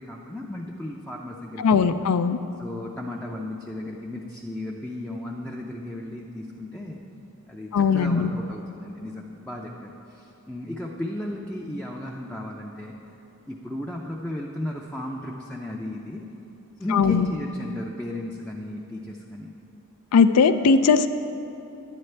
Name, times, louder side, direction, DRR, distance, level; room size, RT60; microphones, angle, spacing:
voice 1, 0.0-1.9 2.6-7.0 7.5-12.9 13.5-16.2 16.8-19.6, left 1 dB, 5° left, -2 dB, 0.4 m, -35 dB
voice 2, 1.6-2.4 7.7-8.3 16.9-17.3 20.1-21.1, left 5 dB, 85° left, 11 dB, 0.4 m, -19 dB
11.0 x 9.2 x 3.3 m, 2.9 s
head